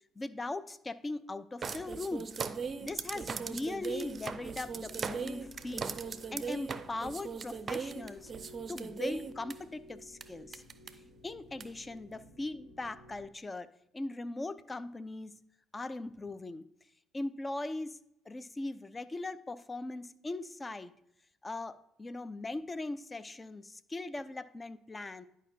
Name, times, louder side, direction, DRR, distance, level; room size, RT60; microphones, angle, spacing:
voice 1, 0.2-2.3 2.8-6.0 6.3-8.3 8.7-10.6 11.2-13.7 13.9-15.3 15.7-16.7 17.1-18.0 18.3-20.9 21.4-25.3, left 2 dB, 25° left, 14 dB, 0.5 m, -39 dB
sound 1, 1.6-9.5 10.2-10.3 10.5-10.9 11.6-11.7, right 5 dB, 40° right, 0.5 m, -38 dB
sound 2, 2.6-13.3, left 1 dB, 70° left, 1.7 m, -55 dB
10.5 x 5.1 x 2.7 m, 0.78 s
hypercardioid pair, 50°, 0 cm